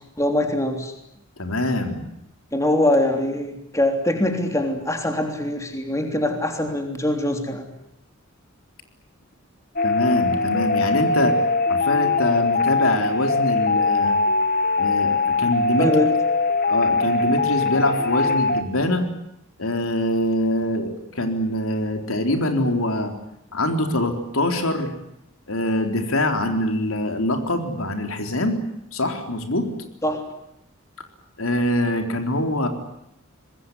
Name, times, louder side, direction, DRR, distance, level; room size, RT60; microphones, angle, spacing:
voice 1, 0.2-0.9 2.5-7.6 15.8-16.1 30.0-30.2, left 1 dB, 15° left, 4 dB, 3.4 m, -23 dB
voice 2, 1.4-2.1 9.8-11.4 11.7-14.2 14.8-15.9 16.7-19.0 19.6-23.1 23.5-24.9 25.5-28.6 28.9-29.7 31.4-32.7, left 1 dB, 85° left, 5 dB, 3.9 m, -24 dB
sound 1, 9.8-18.6, left 3 dB, 45° left, 1.8 m, -21 dB
25.5 x 20.5 x 9.7 m, 0.79 s
head